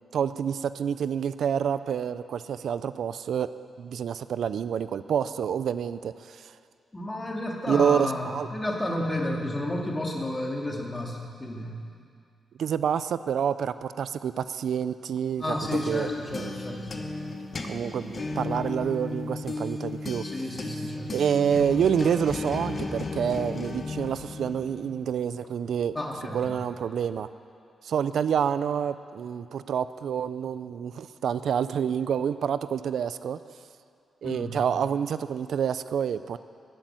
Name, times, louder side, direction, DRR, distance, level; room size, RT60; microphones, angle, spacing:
voice 1, 0.1-6.5 7.6-8.5 12.6-15.5 15.9-16.5 17.6-20.3 21.1-26.0 26.3-27.3 27.8-33.4 34.2-36.4, right 8 dB, 75° right, 13 dB, 0.4 m, -28 dB
voice 2, 6.9-11.8 15.4-17.1 20.2-21.1 25.9-26.5 34.2-34.6, left 1 dB, 20° left, 0 dB, 2.2 m, -32 dB
sound 1, 15.4-25.0, left 3 dB, 40° left, 1.2 m, -35 dB
13.5 x 9.1 x 9.1 m, 2.4 s
cardioid pair, 105°, 0 cm